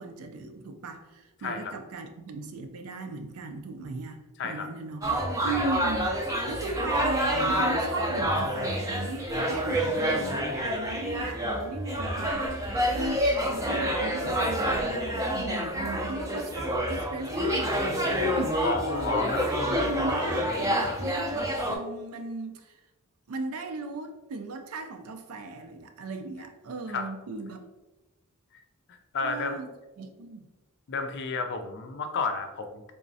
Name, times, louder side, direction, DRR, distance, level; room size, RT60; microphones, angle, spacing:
voice 1, 0.0-5.0 5.4-6.1 6.5-22.8 23.3-27.6 29.2-29.7 30.0-30.5, right 3 dB, 75° right, 6 dB, 0.4 m, -37 dB
voice 2, 1.4-1.7 4.4-4.7 5.4-5.6 18.6-19.4 26.9-27.1 28.9-29.6 30.9-32.9, left 4 dB, 55° left, 6 dB, 0.4 m, -31 dB
sound 1, 5.0-21.8, equal, 15° right, 0.4 m, -28 dB
3.6 x 3.0 x 2.6 m, 1.1 s
head